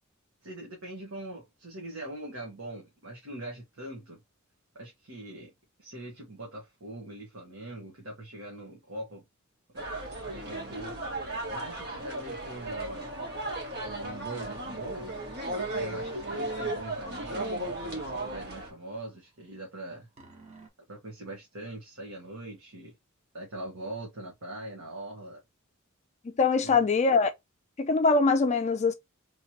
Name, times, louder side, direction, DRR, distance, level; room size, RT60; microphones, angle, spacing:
voice 1, 0.4-4.2 4.7-5.5 5.8-9.2 9.7-10.9 11.5-13.1 13.8-15.2 15.7-20.1 20.9-22.9 23.3-25.4 26.6-26.8, right 1 dB, 80° right, 1.3 m, -42 dB
sound 1, 9.8-18.7, right 2 dB, 55° right, 1.4 m, -35 dB
sound 2, 13.0-18.5 20.2-20.7, left 2 dB, 30° right, 1.1 m, -48 dB
voice 2, 26.2-27.3 27.8-28.9, left 4 dB, 35° left, 0.4 m, -23 dB
3.2 x 2.9 x 2.7 m
head